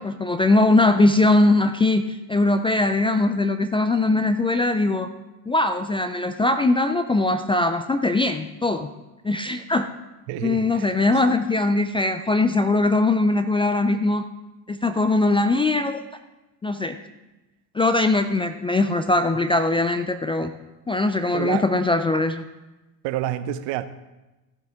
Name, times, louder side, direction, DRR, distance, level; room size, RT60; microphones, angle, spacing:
voice 1, 0.0-5.1 5.5-8.9 9.2-9.9 10.4-14.2 14.7-16.0 16.6-17.0 17.7-20.5 20.9-22.4, left 2 dB, 10° left, 9 dB, 0.3 m, -21 dB
voice 2, 10.3-10.9 11.3-11.4 21.3-21.7 23.0-23.9, right 12 dB, 65° right, 13 dB, 0.8 m, -28 dB
15.0 x 7.6 x 3.6 m, 1.0 s
hypercardioid pair, 70°, 49 cm